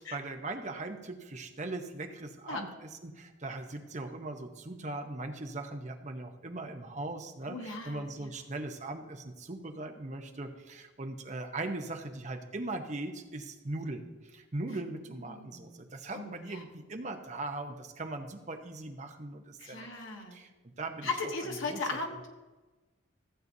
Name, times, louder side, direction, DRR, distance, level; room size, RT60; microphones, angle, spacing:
voice 1, 0.0-19.9 20.3-21.1 21.7-21.8, right 2 dB, 35° right, 5 dB, 0.8 m, -40 dB
voice 2, 7.5-8.3 15.3-15.8 16.1-16.7 19.6-20.4 21.0-22.3, left 3 dB, 85° left, 1 dB, 1.6 m, -37 dB
15.0 x 8.1 x 2.7 m, 1.2 s
head